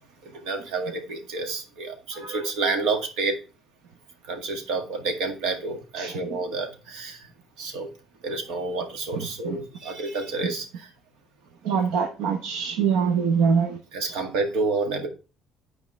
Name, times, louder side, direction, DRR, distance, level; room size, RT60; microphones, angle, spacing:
voice 1, 0.4-3.4 4.3-7.2 7.6-7.9 8.2-10.7 13.9-15.1, right 3 dB, 70° right, 3 dB, 1.9 m, -29 dB
voice 2, 9.1-9.6 11.6-13.8, right 6 dB, 90° right, 3 dB, 1.0 m, -24 dB
9.6 x 4.7 x 3.2 m, 0.32 s
cardioid pair, 170°, 0 cm